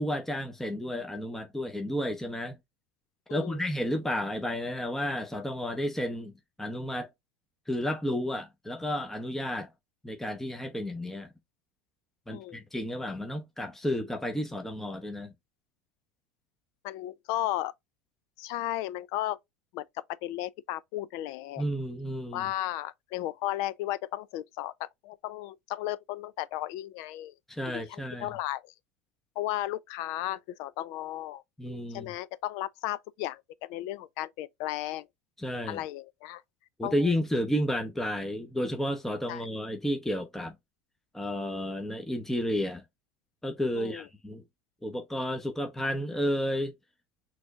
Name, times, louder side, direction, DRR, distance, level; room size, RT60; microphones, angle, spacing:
voice 1, 0.0-2.6 3.3-6.3 6.6-7.1 7.7-9.7 10.0-11.3 12.3-15.3 21.6-22.5 27.5-28.3 31.6-32.1 35.4-35.8 36.8-40.5 41.1-42.8 43.4-44.4 44.8-46.7, equal, 5° left, 0.8 m, -32 dB
voice 2, 12.3-12.6 16.8-17.7 18.4-19.4 19.7-21.6 22.3-27.3 27.7-28.7 29.4-31.4 31.9-35.1 35.7-36.4 36.8-37.2 39.3-39.4 43.7-44.0, left 14 dB, 60° left, 0.4 m, -35 dB
6.0 x 3.1 x 2.4 m
hypercardioid pair, 95°, 7 cm